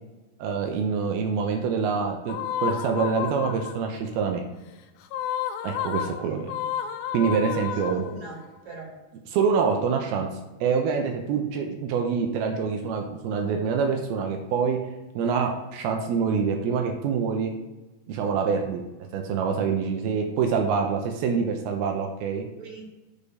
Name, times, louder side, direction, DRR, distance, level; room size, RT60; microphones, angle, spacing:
voice 1, 0.4-4.4 5.6-6.5 7.1-8.1 9.3-10.3 10.6-14.8 15.2-17.5 18.1-18.8 19.1-22.5, right 6 dB, 80° right, 3 dB, 2.6 m, -26 dB
sound 1, 2.3-4.0 5.0-8.4, left 10 dB, 80° left, 2.3 m, -31 dB
voice 2, 6.0-6.5 7.7-8.9 22.6-22.9, right 4 dB, 50° right, -4 dB, 3.6 m, -42 dB
6.6 x 5.3 x 5.4 m, 1.1 s
omnidirectional pair, 4.5 m